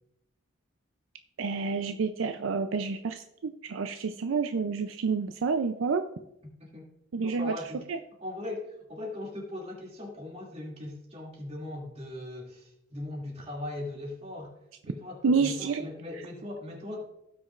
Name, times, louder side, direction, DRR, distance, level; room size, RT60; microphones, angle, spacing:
voice 1, 1.4-6.0 7.1-7.5 7.9-8.0 15.2-15.9, right 5 dB, 75° right, 8 dB, 0.4 m, -29 dB
voice 2, 7.2-7.8 8.2-14.5 14.8-17.0, left 1 dB, 30° right, -2 dB, 2.4 m, -39 dB
16.5 x 6.2 x 2.4 m, 0.81 s
head